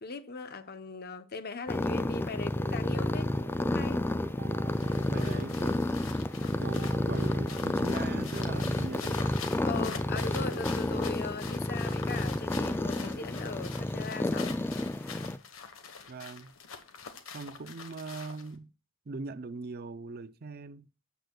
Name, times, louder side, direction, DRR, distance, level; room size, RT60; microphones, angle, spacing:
voice 1, 0.0-3.3 3.6-4.0 5.1-5.5 9.6-14.6, left 4 dB, 50° left, 0.9 m, -39 dB
sound 1, 1.7-15.4, left 1 dB, 10° left, 0.3 m, -31 dB
sound 2, 2.5-10.6, right 5 dB, 90° right, 0.9 m, -49 dB
sound 3, 4.5-18.6, left 6 dB, 85° left, 1.3 m, -45 dB
voice 2, 5.1-5.9 6.6-9.2 16.1-16.5 17.3-18.7 19.1-20.9, right 4 dB, 50° right, 0.5 m, -41 dB
13.0 x 8.1 x 2.3 m
head